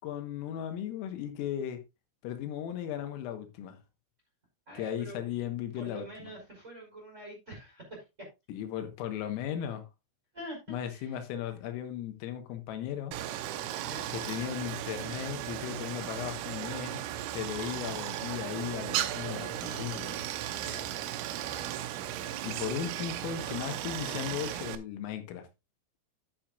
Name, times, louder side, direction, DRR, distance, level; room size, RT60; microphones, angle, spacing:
voice 1, 0.0-1.8 2.2-3.8 4.8-6.3 8.5-9.8 10.7-13.2 14.1-17.0 17.3-20.2 22.4-25.5, left 10 dB, 85° left, 3.9 m, -36 dB
voice 2, 4.7-5.2 5.7-8.0 9.1-9.3 10.3-11.2 13.8-14.1 20.6-21.0 21.4-21.8, equal, 15° right, 4.2 m, -46 dB
Stream, 13.1-24.8, right 12 dB, 85° right, 3.3 m, -36 dB
11.5 x 8.9 x 2.4 m
omnidirectional pair, 5.9 m